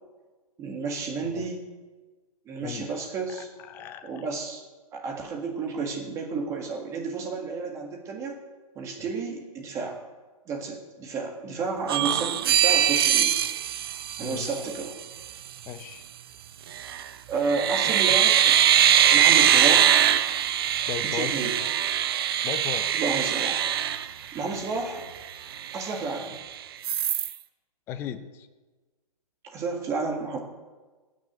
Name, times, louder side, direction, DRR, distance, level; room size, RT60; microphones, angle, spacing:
voice 1, 0.6-1.7 2.5-3.5 4.0-4.6 4.9-8.4 8.8-10.0 10.5-13.4 14.2-14.9 17.3-18.6 19.1-20.0 21.0-21.5 22.9-23.6 24.3-25.1 25.7-26.4 29.4-30.4, right 4 dB, 15° right, 2 dB, 1.8 m, -31 dB
voice 2, 2.6-3.0 3.7-4.3 14.2-14.7 15.7-16.0 18.1-18.2 20.9-21.4 22.4-23.0 27.9-28.5, left 9 dB, 10° left, 9 dB, 0.5 m, -36 dB
sound 1, 11.9-14.9 16.7-17.1 17.4-24.7 25.1-25.2 25.5-26.4 26.8-27.3, right 10 dB, 40° right, 0.6 m, -22 dB
16.0 x 6.5 x 8.7 m, 1.3 s
hypercardioid pair, 160°, 20 cm